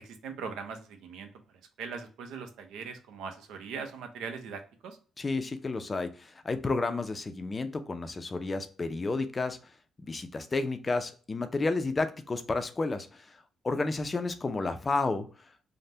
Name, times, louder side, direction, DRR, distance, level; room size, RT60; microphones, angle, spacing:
voice 1, 0.0-1.3 1.8-5.0, right 5 dB, 90° right, 6 dB, 0.5 m, -40 dB
voice 2, 5.2-9.6 10.0-13.4 13.6-15.3, left 3 dB, 25° left, 9 dB, 0.4 m, -31 dB
3.3 x 2.1 x 2.6 m, 0.39 s
cardioid pair, 110°, 0 cm